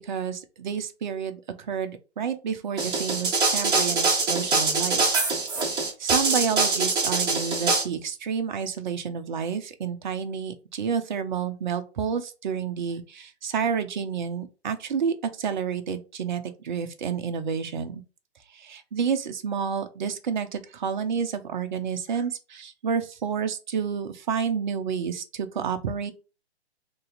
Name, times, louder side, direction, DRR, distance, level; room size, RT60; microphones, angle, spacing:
voice 1, 0.0-1.4 1.7-5.2 6.0-18.0 18.5-26.1, right 7 dB, 45° right, 8 dB, 0.6 m, -29 dB
sound 1, 2.8-7.8, right 3 dB, 15° right, 1.2 m, -23 dB
3.0 x 2.7 x 3.9 m, 0.32 s
figure-of-eight pair, 130°, 34 cm